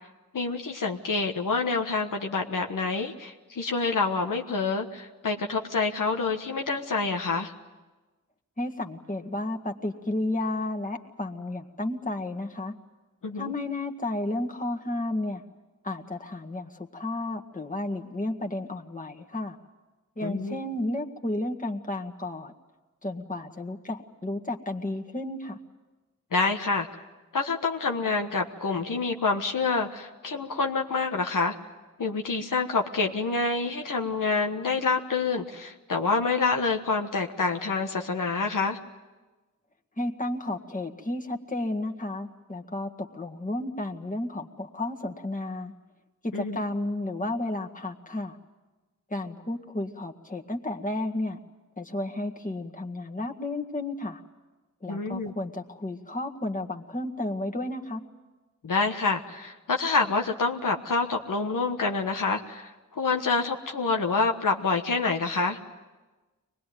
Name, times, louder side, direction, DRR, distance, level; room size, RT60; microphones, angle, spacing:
voice 1, 0.3-7.5 13.2-13.5 20.2-20.6 26.3-27.0 27.3-31.5 32.0-38.8 46.3-46.6 54.9-55.3 58.6-65.6, left 4 dB, 85° left, 3 dB, 1.4 m, -27 dB
voice 2, 8.6-12.7 13.4-15.4 15.8-19.6 20.2-22.5 23.0-25.6 40.0-45.7 46.2-48.4 49.1-51.4 51.8-54.2 54.8-58.0, left 2 dB, 25° left, 3 dB, 1.9 m, -32 dB
24.5 x 20.0 x 9.4 m, 1.2 s
cardioid pair, 50°, 31 cm